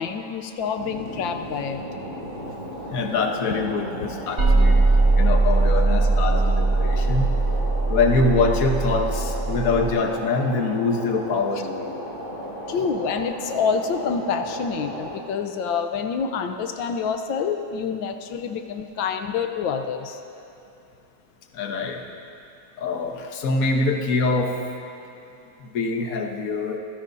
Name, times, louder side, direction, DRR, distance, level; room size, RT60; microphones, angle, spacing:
voice 1, 0.0-1.9 12.7-20.2, left 6 dB, 90° left, 6 dB, 1.5 m, -27 dB
sound 1, 0.7-15.2, equal, 25° right, 3.9 m, -35 dB
voice 2, 2.9-4.8 5.1-7.3 7.9-12.0 21.5-22.0 22.8-24.6 25.6-26.8, left 3 dB, 50° left, 2 dB, 1.4 m, -24 dB
sound 2, 4.4-9.9, right 3 dB, 45° right, 2.5 m, -20 dB
26.5 x 16.0 x 2.7 m, 2.9 s
omnidirectional pair, 2.1 m